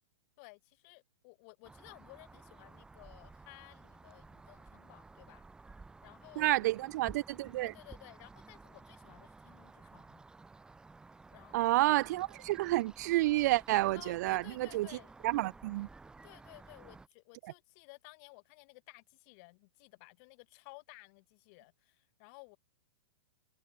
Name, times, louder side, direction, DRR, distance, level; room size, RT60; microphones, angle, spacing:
voice 1, 0.4-5.4 6.0-6.7 7.6-10.2 11.3-12.0 13.9-15.1 16.2-22.6, left 32 dB, 35° left, 7.6 m, -56 dB
sound 1, 1.6-17.1, right 3 dB, 5° right, 5.5 m, -55 dB
voice 2, 6.4-7.7 11.5-14.9 15.2-15.9, right 17 dB, 40° right, 0.9 m, -30 dB
hypercardioid pair, 165°, 14 cm